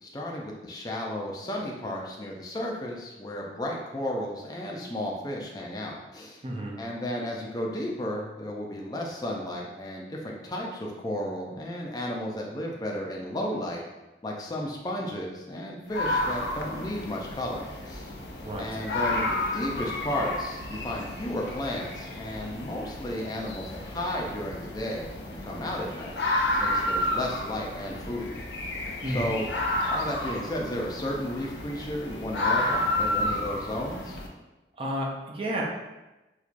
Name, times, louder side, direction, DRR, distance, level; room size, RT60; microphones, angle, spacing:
voice 1, 0.0-6.4 6.8-13.8 14.2-18.1 18.6-26.2 26.5-28.3 29.1-29.5 29.9-34.2, left 1 dB, 20° left, -2 dB, 0.4 m, -33 dB
voice 2, 6.4-6.8 18.4-18.7 29.0-29.4 34.8-35.6, right 1 dB, 30° right, -1 dB, 0.5 m, -31 dB
sound 1, 15.9-34.3, left 1 dB, 85° left, 0.5 m, -31 dB
4.4 x 2.3 x 2.5 m, 1.0 s
head